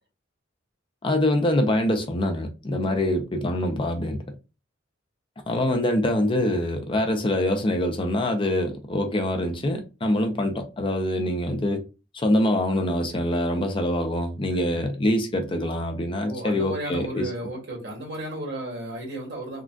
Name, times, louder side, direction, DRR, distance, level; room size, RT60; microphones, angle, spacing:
voice 1, 1.0-4.2 5.5-11.8 12.1-17.3, left 1 dB, 25° left, 0.5 m, -24 dB
voice 2, 16.2-19.6, right 1 dB, 60° right, 1.8 m, -34 dB
3.7 x 2.3 x 2.3 m
head